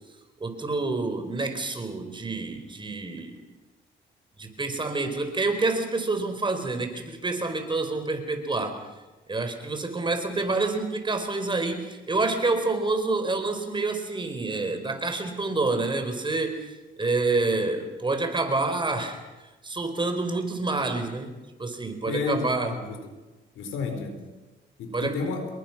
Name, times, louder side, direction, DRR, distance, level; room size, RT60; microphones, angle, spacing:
voice 1, 0.4-3.4 4.4-8.8 9.3-19.2 19.6-21.3 21.6-22.7 24.9-25.2, right 3 dB, 25° right, 7 dB, 4.5 m, -28 dB
voice 2, 22.1-23.1 23.6-24.2 24.8-25.5, left 4 dB, 85° left, 6 dB, 4.6 m, -31 dB
28.0 x 22.0 x 6.0 m, 1.2 s
cardioid pair, 90°, 20 cm